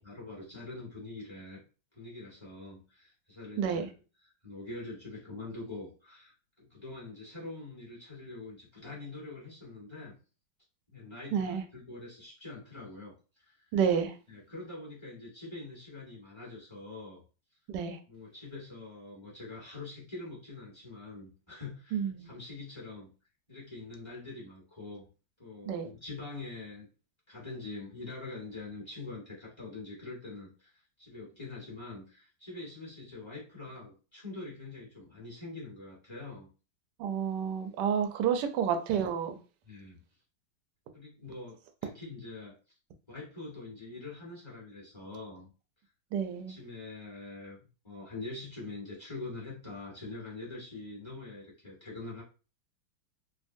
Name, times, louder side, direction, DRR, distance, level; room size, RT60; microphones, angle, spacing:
voice 1, 0.0-1.6 1.9-3.8 4.4-10.2 10.9-13.7 14.3-17.2 18.1-23.1 23.5-25.0 25.4-26.9 27.3-36.5 39.6-40.0 40.9-42.5 43.1-45.5 46.5-47.6 47.8-52.2, left 3 dB, 20° left, 0.9 m, -44 dB
voice 2, 3.6-3.9 11.3-11.6 13.7-14.2 17.7-18.0 21.9-22.3 25.7-25.9 37.0-39.4 46.1-46.6, right 7 dB, 75° right, 1.0 m, -30 dB
3.5 x 2.2 x 2.5 m
omnidirectional pair, 2.3 m